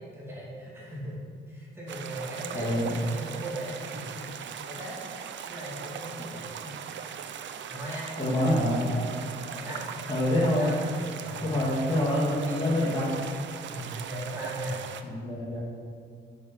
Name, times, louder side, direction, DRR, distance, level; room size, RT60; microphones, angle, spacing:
voice 1, 0.1-1.2 1.5-5.0 5.5-7.0 7.7-10.1 10.6-12.8 13.7-14.8, right 1 dB, 10° right, -6 dB, 2.6 m, -39 dB
sound 1, 1.9-15.0, right 8 dB, 70° right, 0.7 m, -40 dB
voice 2, 2.5-3.0 8.2-9.0 10.1-10.8 11.4-13.1 15.0-15.6, left 1 dB, 25° left, -6 dB, 2.5 m, -26 dB
10.0 x 6.5 x 6.7 m, 2.2 s
cardioid pair, 145°, 20 cm